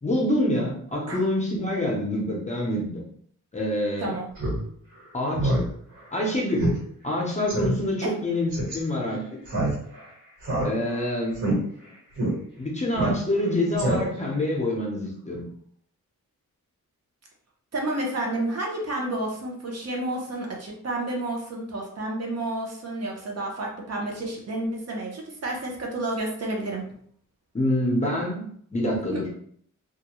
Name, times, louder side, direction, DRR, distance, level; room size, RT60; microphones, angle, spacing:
voice 1, 0.0-3.0 3.5-4.1 5.1-5.5 6.1-6.7 7.0-9.2 10.6-11.4 12.6-15.4 27.5-28.5 28.7-29.3, left 1 dB, 20° left, -2 dB, 0.5 m, -26 dB
Speech synthesizer, 4.4-4.6 4.9-5.0 5.3-5.7 6.0-6.1 6.6-6.8 7.1-7.2 7.5-7.7 8.5-8.8 9.5-10.0 10.4-11.0 11.3-11.5 12.2-12.3 12.9-13.4 13.8-14.3, right 1 dB, 70° right, 1.2 m, -25 dB
voice 2, 17.7-26.8 29.1-29.2, right 1 dB, 50° right, -1 dB, 0.6 m, -30 dB
2.3 x 2.1 x 2.9 m, 0.62 s
wide cardioid pair, 150°, 32 cm